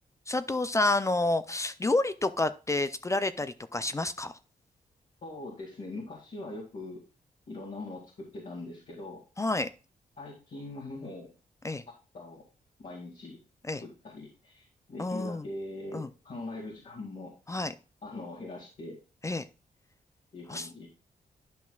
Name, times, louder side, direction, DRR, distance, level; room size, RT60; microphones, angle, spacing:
voice 1, 0.3-4.4 9.4-9.7 11.6-11.8 13.6-13.8 15.0-15.5 15.9-16.1 17.5-17.7 19.2-19.5 20.5-20.7, left 2 dB, 20° left, 13 dB, 0.4 m, -29 dB
voice 2, 5.2-7.0 7.5-9.2 10.2-11.3 12.1-12.4 12.8-13.4 13.8-17.3 18.0-19.0 20.3-20.9, left 2 dB, 55° left, -4 dB, 2.1 m, -41 dB
10.5 x 5.9 x 2.3 m, 0.34 s
wide cardioid pair, 115°, 15 cm